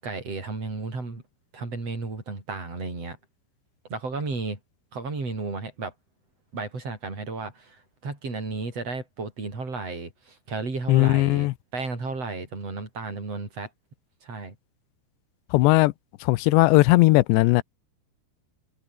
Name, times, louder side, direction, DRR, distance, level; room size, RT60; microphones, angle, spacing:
voice 1, 0.0-1.2 1.5-3.2 3.9-4.6 4.9-5.9 6.5-13.7 14.2-14.5, right 3 dB, 35° right, 7.7 m, -33 dB
voice 2, 10.9-11.5 15.5-15.9 16.3-17.6, left 20 dB, 85° left, 2.9 m, -18 dB
omnidirectional pair, 5.0 m